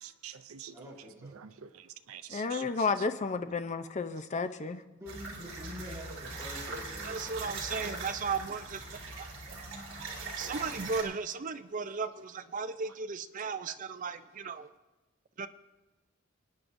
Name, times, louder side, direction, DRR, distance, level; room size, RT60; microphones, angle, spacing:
voice 1, 0.0-0.7 1.4-1.5 2.1-2.7 10.4-10.5, right 10 dB, 85° right, 9 dB, 0.6 m, -46 dB
voice 2, 0.7-1.3 4.9-7.8, equal, 15° right, -5 dB, 3.7 m, -46 dB
voice 3, 2.3-4.8, left 4 dB, 35° left, 9 dB, 0.5 m, -32 dB
sound 1, 5.1-11.0, right 3 dB, 65° right, 2.9 m, -41 dB
voice 4, 7.1-8.8 10.4-14.7 15.4-15.5, right 5 dB, 40° right, 10 dB, 0.5 m, -35 dB
25.0 x 9.6 x 2.6 m, 1.2 s
head